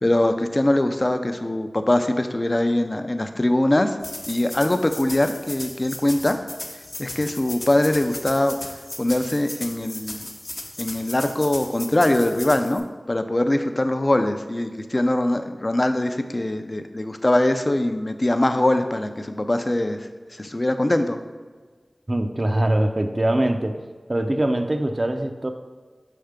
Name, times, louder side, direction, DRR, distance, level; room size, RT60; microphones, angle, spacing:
voice 1, 0.0-4.0 4.3-6.4 7.0-8.6 9.0-10.3 10.8-21.2, left 1 dB, 40° left, 7 dB, 0.5 m, -22 dB
sound 1, 4.0-12.8, left 1 dB, 60° left, 0.8 m, -36 dB
voice 2, 22.1-23.8 24.1-25.5, right 1 dB, 40° right, 6 dB, 0.5 m, -22 dB
5.6 x 3.4 x 5.0 m, 1.4 s
wide cardioid pair, 45°, 0 cm